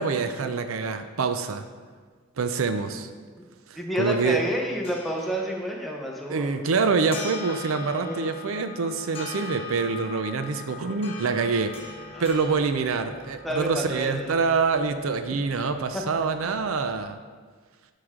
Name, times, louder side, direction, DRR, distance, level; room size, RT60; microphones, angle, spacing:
voice 1, 0.0-1.7 2.4-3.1 3.7-4.4 6.3-11.7 12.2-17.2, right 4 dB, 75° right, 8 dB, 0.5 m, -26 dB
voice 2, 3.8-6.6 8.0-8.2 12.1-12.3 13.4-14.4 15.9-16.2, equal, ahead, -1 dB, 0.9 m, -29 dB
sound 1, 4.5-17.1, left 4 dB, 30° left, 1.5 m, -42 dB
11.0 x 4.8 x 3.7 m, 1.5 s
head